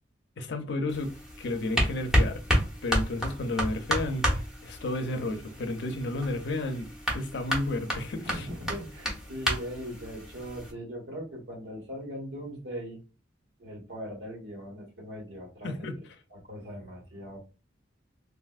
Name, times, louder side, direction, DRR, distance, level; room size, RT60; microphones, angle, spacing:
voice 1, 0.4-1.1 1.4-2.4 2.8-8.5 15.6-16.0, left 2 dB, 65° left, 0.5 m, -32 dB
sound 1, 0.9-10.7, equal, 5° right, 1.0 m, -31 dB
voice 2, 8.2-13.0 13.6-15.9 16.3-17.4, equal, 75° right, 1.4 m, -40 dB
3.4 x 2.5 x 2.4 m
head